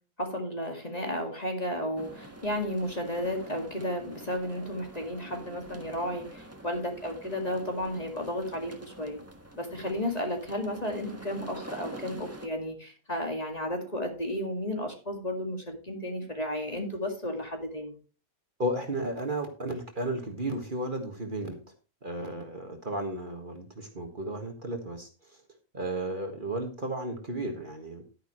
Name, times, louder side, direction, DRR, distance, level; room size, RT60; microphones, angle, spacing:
voice 1, 0.2-9.2 9.6-18.0, left 1 dB, 25° left, 3 dB, 2.2 m, -33 dB
sound 1, 2.0-12.5, right 1 dB, 10° right, 1.3 m, -46 dB
voice 2, 18.6-21.6 22.0-25.4 25.7-28.0, right 1 dB, 35° right, 3 dB, 1.8 m, -34 dB
11.5 x 10.5 x 3.1 m, 0.34 s
omnidirectional pair, 1.5 m